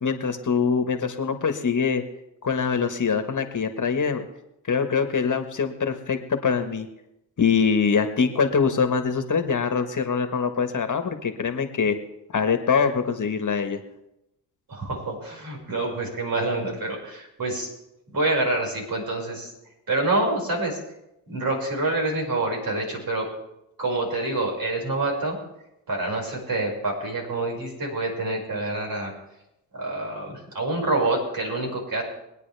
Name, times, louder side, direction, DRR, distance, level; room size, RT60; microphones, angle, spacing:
voice 1, 0.0-2.0 2.4-4.2 4.7-6.9 7.4-11.9 12.3-13.8, left 6 dB, 45° left, 8 dB, 1.7 m, -23 dB
voice 2, 14.7-17.7 18.1-19.5 19.9-20.8 21.3-23.3 23.8-25.4 25.9-29.1 29.7-32.0, right 2 dB, 55° right, -1 dB, 6.1 m, -27 dB
24.0 x 9.4 x 3.5 m, 0.88 s
supercardioid pair, 55°, 43 cm